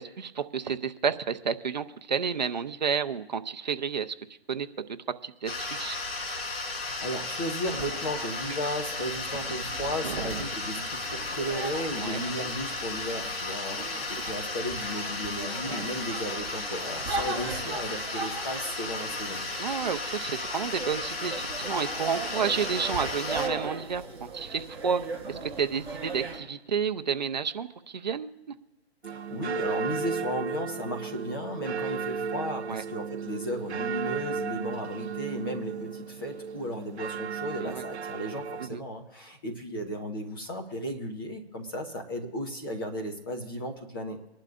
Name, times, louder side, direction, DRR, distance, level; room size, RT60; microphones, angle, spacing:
voice 1, 0.0-4.1 4.5-5.0 5.2-6.0 10.0-10.4 12.0-12.2 13.8-13.9 15.7-15.9 19.6-25.0 25.3-28.5 32.7-32.8 37.6-37.8 38.6-38.8, right 6 dB, 40° right, 8 dB, 0.7 m, -31 dB
sound 1, 5.5-23.5, left 3 dB, 60° left, 2.9 m, -34 dB
voice 2, 6.8-19.4 29.1-44.2, equal, 20° left, 2 dB, 1.1 m, -35 dB
sound 2, 7.6-26.4, right 3 dB, 5° right, 4.8 m, -39 dB
sound 3, 29.0-38.7, right 6 dB, 80° right, 0.7 m, -34 dB
25.0 x 11.5 x 2.5 m, 1.1 s
hypercardioid pair, 170°, 33 cm